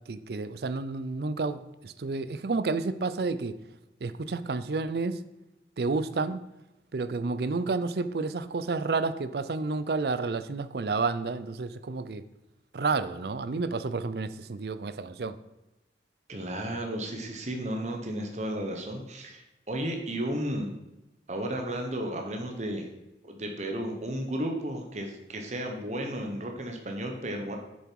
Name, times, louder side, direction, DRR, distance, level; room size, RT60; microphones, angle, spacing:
voice 1, 0.1-3.6 4.0-5.2 5.8-6.4 6.9-12.2 12.7-15.4, right 3 dB, 60° right, 14 dB, 0.5 m, -30 dB
voice 2, 16.3-20.7 21.3-22.9 23.2-27.6, right 1 dB, 40° right, 3 dB, 1.1 m, -33 dB
7.6 x 6.9 x 4.7 m, 0.97 s
head